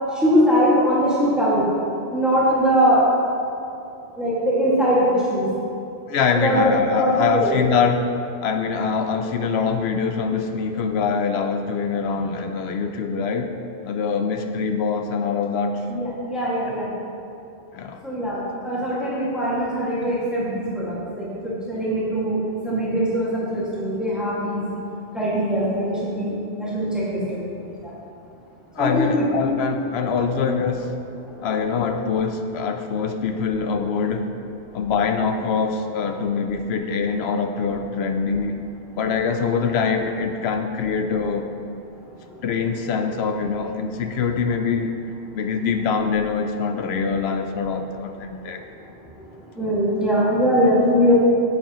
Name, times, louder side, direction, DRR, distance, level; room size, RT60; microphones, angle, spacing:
voice 1, 0.2-1.6 2.1-3.0 4.2-5.5 6.3-7.5 15.9-16.9 18.0-22.4 22.6-24.7 25.1-27.4 27.8-27.9 28.8-29.4 49.6-51.1, equal, ahead, -9 dB, 1.9 m, -21 dB
voice 2, 6.1-8.1 8.4-13.5 13.8-15.8 16.8-16.9 17.7-18.0 28.8-31.0 31.4-34.3 34.7-38.6 39.0-41.5 42.4-45.0 45.3-48.6, left 5 dB, 70° left, 6 dB, 0.8 m, -24 dB
8.8 x 7.8 x 3.0 m, 2.6 s
omnidirectional pair, 1.2 m